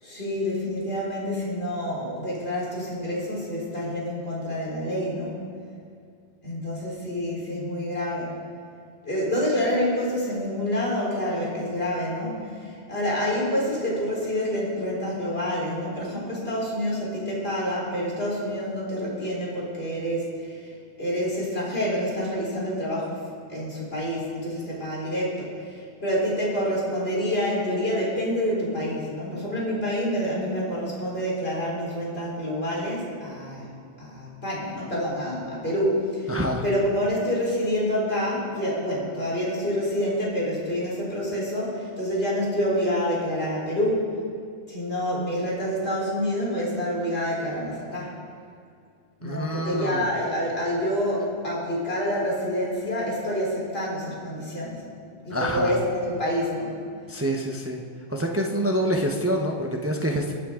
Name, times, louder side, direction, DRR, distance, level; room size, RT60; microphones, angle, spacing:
voice 1, 0.0-5.4 6.4-8.4 9.0-20.7 21.0-33.7 34.0-44.1 44.7-48.2 49.2-54.8 55.2-56.7, equal, 30° left, -5 dB, 4.4 m, -27 dB
voice 2, 36.3-36.6 49.2-50.1 55.3-55.7 57.1-57.8 58.1-60.3, equal, 20° right, 1 dB, 0.4 m, -26 dB
24.0 x 9.0 x 3.8 m, 2.3 s
omnidirectional pair, 2.1 m